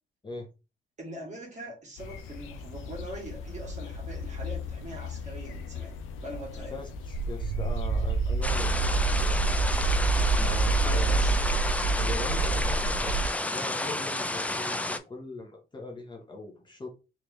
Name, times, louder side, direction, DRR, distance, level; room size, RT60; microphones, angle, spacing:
voice 1, 1.0-6.7 10.8-11.4, right 1 dB, 35° right, 0 dB, 2.0 m, -42 dB
sound 1, 2.0-11.0, left 4 dB, 85° left, 0.6 m, -39 dB
voice 2, 6.7-9.6 10.3-11.4 12.0-16.9, left 3 dB, 25° left, 1 dB, 0.9 m, -41 dB
sound 2, 7.1-13.3, right 4 dB, 80° right, 0.4 m, -26 dB
sound 3, 8.4-15.0, left 1 dB, 5° left, 0.4 m, -31 dB
3.3 x 3.2 x 3.1 m, 0.30 s
cardioid pair, 90°, 20 cm